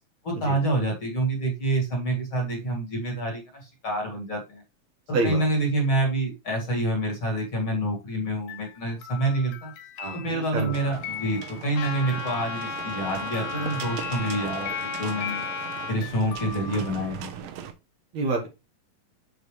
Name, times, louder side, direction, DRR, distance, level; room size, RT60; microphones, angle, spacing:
voice 1, 0.2-4.6 5.1-9.7 10.1-15.4 15.9-17.5, right 1 dB, 40° left, 1 dB, 2.5 m, -27 dB
voice 2, 5.1-5.5 10.0-10.7 14.4-14.5 18.1-18.5, right 3 dB, 60° right, 1 dB, 2.5 m, -27 dB
sound 1, 8.5-12.8 13.3-17.3, left 10 dB, 80° left, 2.8 m, -40 dB
sound 2, 10.7-17.7, right 10 dB, 85° right, 2.7 m, -39 dB
Trumpet, 11.7-16.0, left 4 dB, 60° left, 2.0 m, -34 dB
6.8 x 6.5 x 3.2 m, 0.25 s
omnidirectional pair, 4.0 m